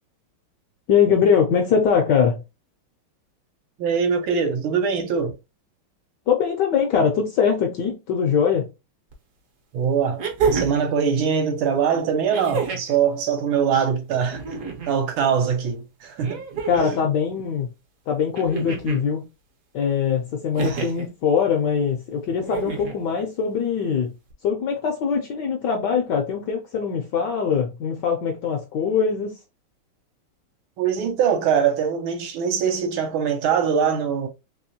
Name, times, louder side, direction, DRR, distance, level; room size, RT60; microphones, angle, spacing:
voice 1, 0.9-2.4 6.3-8.7 16.7-17.7 18.1-19.2 19.7-24.1 24.4-29.4, left 7 dB, 70° left, 1.0 m, -22 dB
voice 2, 3.8-5.3 9.7-14.4 14.9-16.4 16.7-17.0 20.6-20.9 30.8-34.3, right 7 dB, 75° right, 1.5 m, -22 dB
sound 1, 9.1-9.2 10.2-10.9 12.3-13.0 14.2-15.0 16.2-17.0 18.3-19.0 20.5-21.1 22.4-23.0 24.3-24.4, right 5 dB, 55° right, 1.0 m, -28 dB
3.4 x 3.0 x 2.7 m
omnidirectional pair, 2.4 m